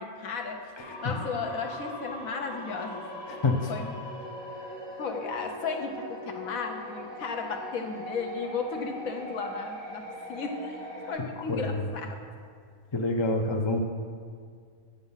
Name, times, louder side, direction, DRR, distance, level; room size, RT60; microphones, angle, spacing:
voice 1, 0.0-4.1 5.0-12.2, left 4 dB, 70° left, 3 dB, 1.3 m, -35 dB
sound 1, 0.8-11.1, equal, 75° right, 3.5 m, -41 dB
voice 2, 11.5-11.8 12.9-13.8, left 2 dB, 30° left, 3 dB, 0.5 m, -26 dB
10.0 x 6.6 x 5.6 m, 2.1 s
omnidirectional pair, 1.5 m